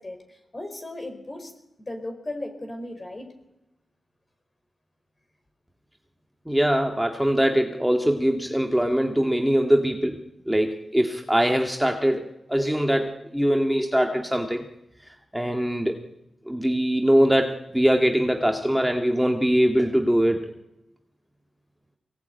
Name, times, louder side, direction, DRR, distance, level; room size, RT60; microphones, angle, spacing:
voice 1, 0.0-1.5 1.9-3.3, left 1 dB, 30° left, 5 dB, 4.9 m, -36 dB
voice 2, 6.4-14.7 15.3-16.0 16.4-20.5, equal, 5° right, 3 dB, 1.8 m, -22 dB
22.5 x 18.0 x 9.2 m, 0.92 s
cardioid pair, 65°, 0 cm